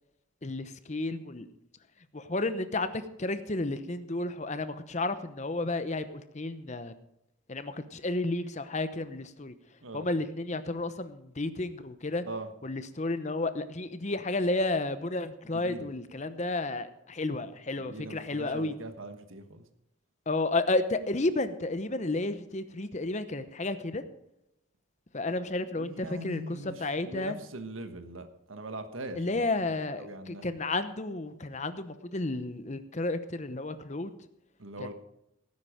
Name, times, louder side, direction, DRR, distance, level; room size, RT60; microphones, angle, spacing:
voice 1, 0.4-1.5 2.1-6.9 7.5-9.5 9.9-12.2 12.6-18.7 20.3-24.0 25.1-27.4 29.2-34.1 34.8-34.9, left 2 dB, 35° left, 11 dB, 0.8 m, -32 dB
voice 2, 15.5-15.9 17.9-19.6 25.8-29.5 29.9-30.5 34.6-34.9, right 1 dB, 80° right, 8 dB, 1.4 m, -41 dB
17.0 x 9.6 x 5.0 m, 0.83 s
head